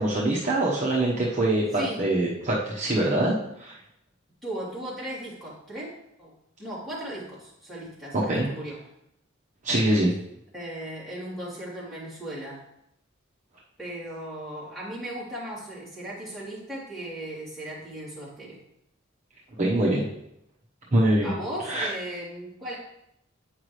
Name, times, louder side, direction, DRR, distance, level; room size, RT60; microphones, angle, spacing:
voice 1, 0.0-3.7 8.1-8.5 9.6-10.1 19.6-20.1 20.9-21.3 21.6-21.9, right 1 dB, 35° right, -5 dB, 1.0 m, -24 dB
voice 2, 1.7-2.0 4.4-5.9 6.2-6.3 6.6-8.8 10.5-12.6 13.8-18.6 21.2-22.7, right 1 dB, ahead, -9 dB, 3.2 m, -37 dB
8.9 x 5.9 x 3.2 m, 0.79 s
head